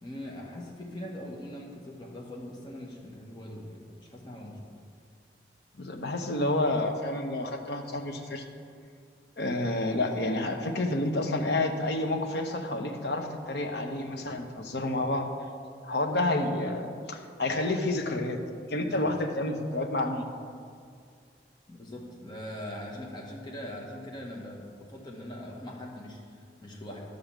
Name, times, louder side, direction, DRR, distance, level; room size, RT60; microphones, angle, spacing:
voice 1, 0.0-4.7 18.8-19.1 21.7-27.0, left 1 dB, 25° left, -2 dB, 1.6 m, -41 dB
voice 2, 5.8-8.4 9.4-15.3 15.8-18.4 18.7-20.3, left 2 dB, 70° left, 4 dB, 1.0 m, -29 dB
11.0 x 5.3 x 7.4 m, 2.2 s
head